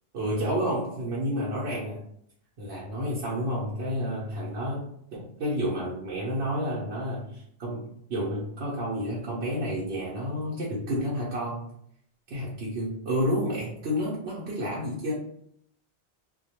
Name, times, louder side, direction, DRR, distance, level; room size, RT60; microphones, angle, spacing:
voice 1, 0.1-2.0 2.6-4.9 5.1-11.7 12.3-15.1, equal, 85° right, -7 dB, 0.9 m, -30 dB
2.2 x 2.1 x 2.8 m, 0.70 s
omnidirectional pair, 1.1 m